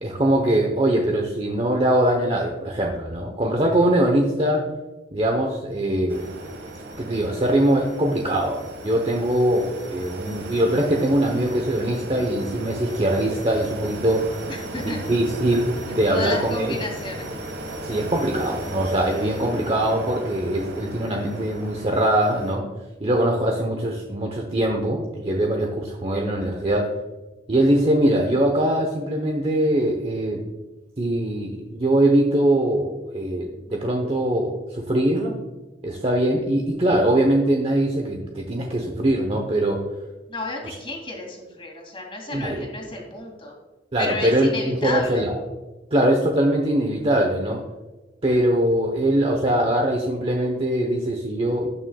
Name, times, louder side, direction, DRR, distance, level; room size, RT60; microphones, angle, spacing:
voice 1, 0.0-4.7 5.1-6.2 7.0-8.6 8.8-14.4 14.8-16.7 17.8-22.6 23.0-26.9 27.5-30.4 31.0-35.3 35.8-39.8 40.6-40.7 42.3-42.7 43.9-45.3 45.9-47.6 48.2-51.7, right 1 dB, 35° right, 1 dB, 0.9 m, -22 dB
sound 1, 6.1-22.5, right 1 dB, 80° right, 1.6 m, -36 dB
voice 2, 14.5-15.0 15.9-17.3 40.3-43.5 44.0-45.3, left 2 dB, 30° left, 1 dB, 2.4 m, -32 dB
18.0 x 6.3 x 2.3 m, 1.2 s
head